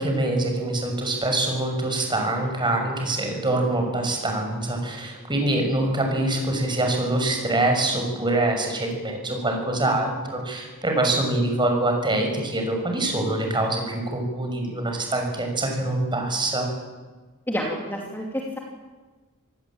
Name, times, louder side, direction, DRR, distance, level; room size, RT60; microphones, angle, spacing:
voice 1, 0.0-16.7, right 2 dB, 20° right, 3 dB, 6.5 m, -24 dB
voice 2, 17.5-18.6, equal, 10° left, -1 dB, 2.9 m, -29 dB
27.0 x 19.5 x 8.8 m, 1.3 s
head